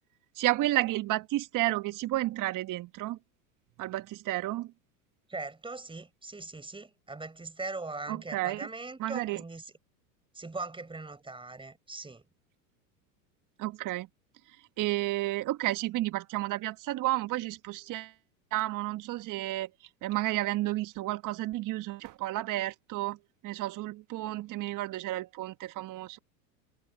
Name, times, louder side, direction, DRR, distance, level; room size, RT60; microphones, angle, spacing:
voice 1, 0.4-3.2 3.8-4.7 8.1-8.7 9.0-9.4 13.6-14.1 14.8-18.1 18.5-19.7 20.0-23.2 23.4-26.2, right 17 dB, 40° right, 1.5 m, -31 dB
voice 2, 5.3-9.7 10.3-12.2, right 3 dB, 10° right, 6.1 m, -40 dB
hypercardioid pair, 100°, 49 cm